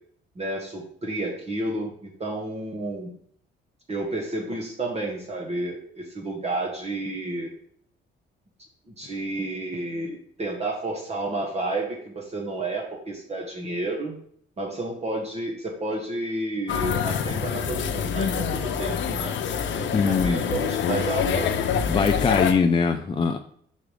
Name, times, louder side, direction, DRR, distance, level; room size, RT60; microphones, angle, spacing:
voice 1, 0.3-3.1 3.9-7.5 9.0-14.2 14.6-19.3 19.7-21.5, right 2 dB, 30° right, -1 dB, 1.4 m, -31 dB
sound 1, 16.7-22.5, left 7 dB, 70° left, 0.7 m, -26 dB
voice 2, 19.9-20.4 21.9-23.4, left 5 dB, 25° left, 5 dB, 0.5 m, -22 dB
5.3 x 4.8 x 5.0 m, 0.62 s
cardioid pair, 90°, 20 cm